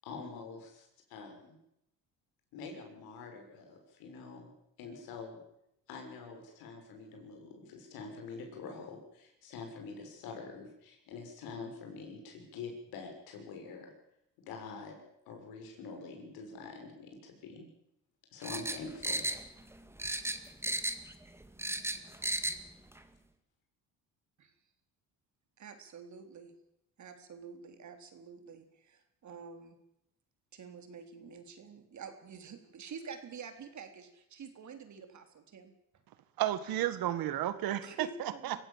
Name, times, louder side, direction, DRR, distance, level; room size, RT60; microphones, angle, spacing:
voice 1, 0.0-1.6 2.5-4.5 4.8-5.4 5.9-13.9 14.4-15.0 15.3-17.7 18.3-19.3 21.8-22.0, left 4 dB, 85° left, 3 dB, 6.7 m, -46 dB
sound 1, 18.4-19.7 20.0-21.1 21.4-22.6 22.9-23.0, right 1 dB, 5° right, 2.2 m, -34 dB
voice 2, 25.6-26.5 27.0-29.8 30.5-35.7 37.8-38.7, right 6 dB, 50° right, 7 dB, 3.9 m, -48 dB
voice 3, 36.4-38.7, right 12 dB, 75° right, 13 dB, 1.9 m, -33 dB
25.0 x 15.5 x 7.5 m, 0.82 s
cardioid pair, 90°, 36 cm